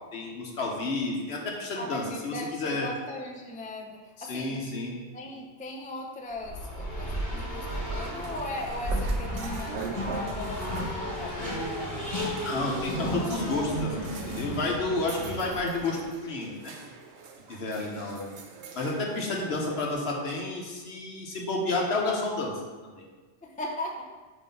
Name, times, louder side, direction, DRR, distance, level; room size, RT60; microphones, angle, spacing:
voice 1, 0.1-2.9 4.2-4.9 12.4-16.7 17.5-18.3 18.7-22.5 22.8-23.0, left 2 dB, 65° left, -1 dB, 1.2 m, -31 dB
voice 2, 1.8-4.6 5.1-11.9 17.6-18.0 23.4-24.1, left 1 dB, 10° left, 0 dB, 0.3 m, -38 dB
Race car auto racing, 6.4-16.0, equal, 45° left, 1.5 m, -33 dB
sound 1, 7.1-19.9, right 5 dB, 70° right, 0.9 m, -44 dB
5.5 x 3.2 x 5.3 m, 1.3 s
omnidirectional pair, 1.2 m